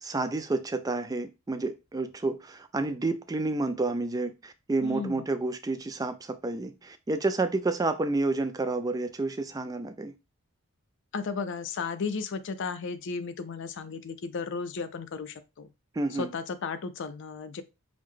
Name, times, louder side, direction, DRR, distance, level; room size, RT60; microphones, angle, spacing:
voice 1, 0.0-10.2 16.0-16.3, right 2 dB, 15° right, 0.3 m, -30 dB
voice 2, 4.8-5.2 11.1-15.7 16.2-17.6, left 4 dB, 55° left, 0.4 m, -34 dB
4.9 x 2.2 x 3.5 m
head